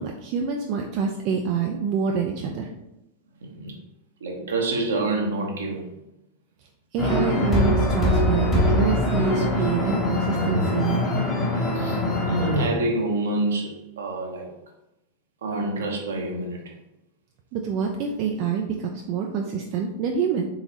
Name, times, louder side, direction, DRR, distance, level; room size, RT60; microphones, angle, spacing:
voice 1, 0.0-2.7 6.9-11.1 17.5-20.5, right 6 dB, 45° right, 2 dB, 0.4 m, -26 dB
voice 2, 3.4-3.7 4.2-5.9 11.7-14.5 15.4-16.7, right 2 dB, 65° right, 1 dB, 0.9 m, -27 dB
sound 1, 7.0-12.7, left 1 dB, 25° left, 0.9 m, -23 dB
3.9 x 3.9 x 2.9 m, 0.90 s
figure-of-eight pair, 90°, 0 cm